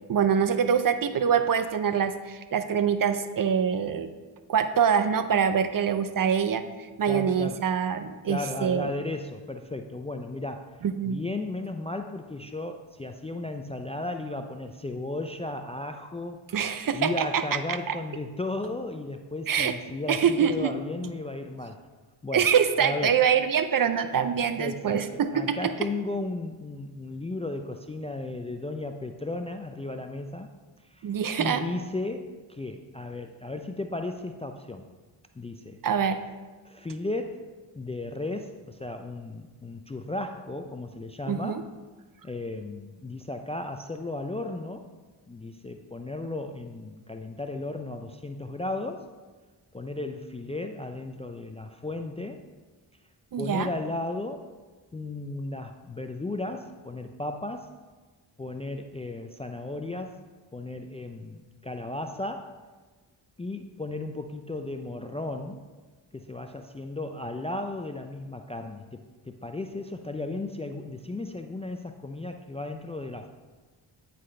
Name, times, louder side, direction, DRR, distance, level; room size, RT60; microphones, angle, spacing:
voice 1, 0.1-4.1 4.5-6.6 7.0-8.9 10.8-11.2 16.5-17.4 17.7-17.9 19.5-19.7 20.1-20.7 22.3-25.7 31.0-31.6 35.8-36.2 41.3-41.6 53.3-53.7, right 7 dB, 45° right, 10 dB, 0.5 m, -25 dB
voice 2, 7.1-7.6 8.2-10.7 11.0-16.4 16.9-21.8 22.2-22.5 22.8-23.2 24.6-25.1 25.3-30.5 30.9-31.1 31.4-34.9 35.3-35.8 36.6-37.4 37.7-41.6 42.2-44.9 45.3-49.1 49.7-52.4 53.4-54.5 54.9-57.7 58.4-60.2 60.5-62.6 63.4-65.6 66.1-73.3, left 2 dB, 15° left, 6 dB, 0.3 m, -35 dB
8.8 x 4.2 x 3.2 m, 1.3 s
supercardioid pair, 40°, 49 cm